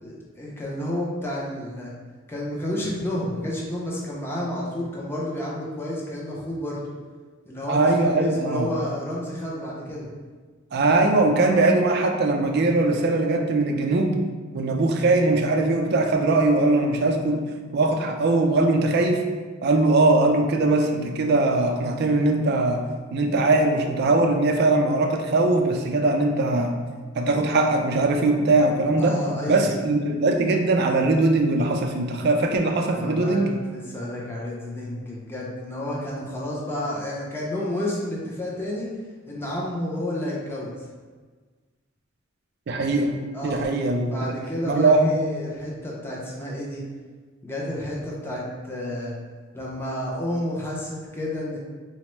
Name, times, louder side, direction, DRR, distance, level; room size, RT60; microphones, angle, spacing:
voice 1, 0.0-1.9 2.3-6.8 7.5-10.1 29.0-29.7 32.9-33.4 33.7-38.9 39.3-40.7 43.3-43.7 44.1-46.8 47.4-49.1 49.5-51.6, left 1 dB, 10° left, -5 dB, 0.5 m, -30 dB
voice 2, 7.7-8.7 10.7-14.1 14.5-17.5 17.7-19.2 19.6-22.8 23.1-26.8 27.2-29.2 29.5-33.5 42.7-44.1 44.7-45.2, right 2 dB, 55° right, 3 dB, 0.4 m, -21 dB
4.2 x 2.0 x 3.0 m, 1.4 s
head